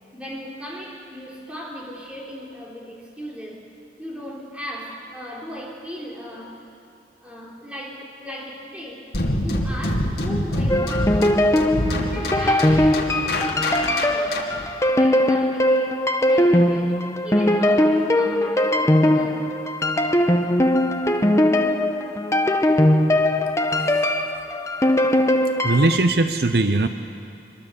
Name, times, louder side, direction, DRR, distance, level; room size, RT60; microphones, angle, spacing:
voice 1, 0.1-3.6 4.0-6.6 7.2-11.5 12.1-14.5 14.9-19.5, equal, 5° right, -3 dB, 3.8 m, -37 dB
sound 1, 9.1-14.7, left 1 dB, 65° left, 2.3 m, -25 dB
sound 2, 10.7-26.0, left 1 dB, 15° left, 1.0 m, -20 dB
voice 2, 25.6-26.9, right 2 dB, 60° right, 8 dB, 0.8 m, -19 dB
24.5 x 22.5 x 7.0 m, 2.5 s
head